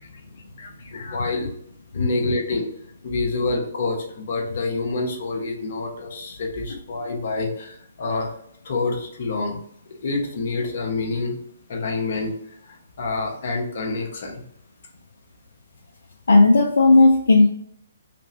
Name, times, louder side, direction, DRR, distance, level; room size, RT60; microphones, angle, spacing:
voice 1, 0.0-1.5 1.9-2.7 3.0-8.3 8.6-9.6 10.0-11.4 11.7-12.3 12.7-14.5, left 3 dB, 50° left, 1 dB, 0.9 m, -27 dB
voice 2, 16.3-17.5, left 2 dB, 65° left, 1 dB, 0.4 m, -14 dB
3.3 x 2.9 x 2.9 m, 0.69 s
figure-of-eight pair, 130°, 0 cm